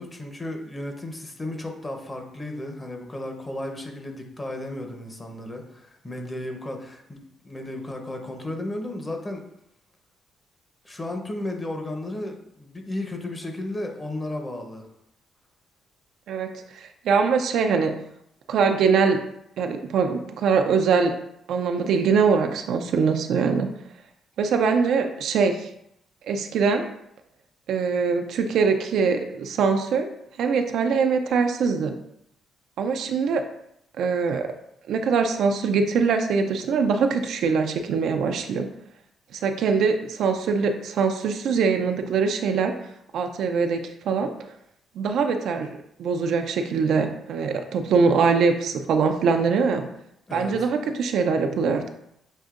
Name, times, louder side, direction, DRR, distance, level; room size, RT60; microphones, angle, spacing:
voice 1, 0.0-9.4 10.8-14.9 50.3-50.7, left 1 dB, 20° left, 3 dB, 0.8 m, -34 dB
voice 2, 16.3-17.9 18.5-19.2 19.6-21.1 21.5-23.7 24.4-25.7 26.3-26.9 27.7-30.1 30.4-32.0 32.8-33.4 34.0-34.5 34.9-38.7 39.3-42.7 43.1-44.3 45.0-49.9 50.3-51.8, right 5 dB, 75° right, 5 dB, 0.4 m, -23 dB
6.3 x 2.7 x 2.5 m, 0.77 s
cardioid pair, 90°, 0 cm